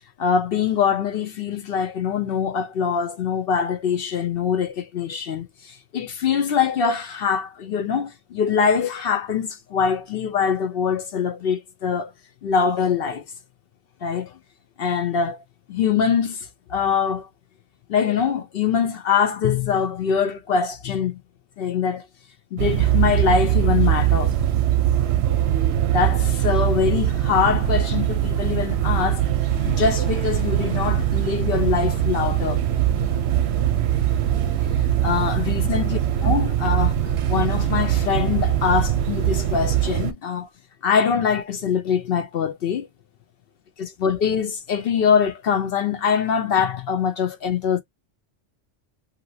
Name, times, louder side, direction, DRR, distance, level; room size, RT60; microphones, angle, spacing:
voice 1, 0.2-12.1 12.4-13.3 14.0-14.4 14.8-15.4 15.7-17.3 17.9-21.2 21.6-22.1 22.5-24.3 25.9-29.2 29.7-32.6 35.0-36.9 37.3-40.5 40.8-42.9 43.8-47.8, left 7 dB, 60° left, 0.7 m, -23 dB
sound 1, 22.6-40.1, right 11 dB, 65° right, 0.8 m, -22 dB
sound 2, 29.5-40.1, right 4 dB, 5° left, 1.4 m, -43 dB
2.8 x 2.7 x 2.7 m
omnidirectional pair, 1.3 m